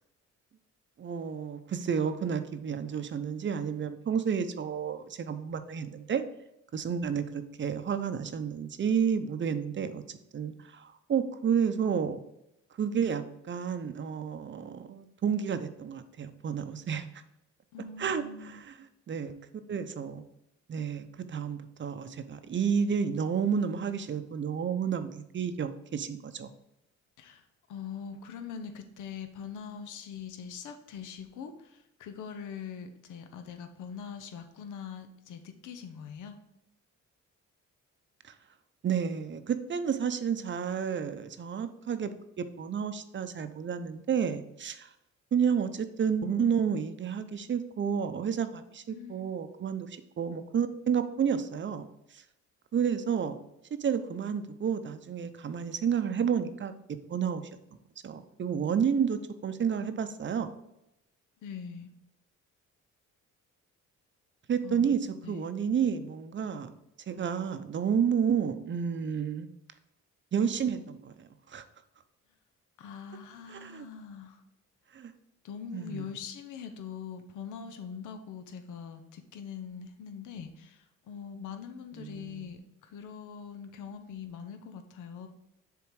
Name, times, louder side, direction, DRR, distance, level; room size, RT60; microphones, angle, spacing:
voice 1, 1.0-6.2 6.7-12.2 12.8-17.1 18.0-18.8 19.1-19.3 19.7-20.2 20.7-26.5 38.2-38.3 38.8-44.9 45.3-51.9 52.1-52.2 52.7-53.4 53.8-56.7 57.1-57.4 58.0-60.5 64.5-66.7 67.1-69.5 70.3-71.1 71.5-71.6 73.5-73.9 74.9-75.1 75.7-76.0 82.0-82.4, right 7 dB, 40° right, 10 dB, 0.6 m, -31 dB
voice 2, 17.7-18.6 27.2-27.4 27.7-36.4 48.9-49.3 61.4-61.9 64.6-65.4 72.8-74.4 75.4-85.3, left 7 dB, 80° left, 7 dB, 0.8 m, -43 dB
7.0 x 3.8 x 4.7 m, 0.87 s
cardioid pair, 90°, 30 cm